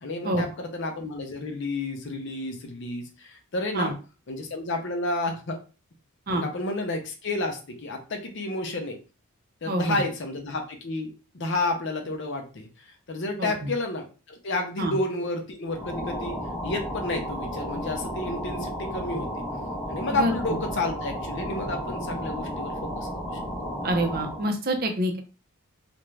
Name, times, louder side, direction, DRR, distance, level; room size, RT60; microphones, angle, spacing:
voice 1, 0.0-3.9 4.3-5.6 6.3-9.0 9.6-12.7 13.1-16.4 16.6-19.3 19.9-23.1, left 2 dB, 55° left, 4 dB, 0.6 m, -31 dB
voice 2, 9.7-10.0 13.4-13.7 14.8-15.0 20.1-20.4 23.8-25.2, right 1 dB, 45° right, 4 dB, 0.5 m, -26 dB
sound 1, 15.7-24.5, equal, 15° left, 0.6 m, -33 dB
2.5 x 2.1 x 3.1 m, 0.34 s
head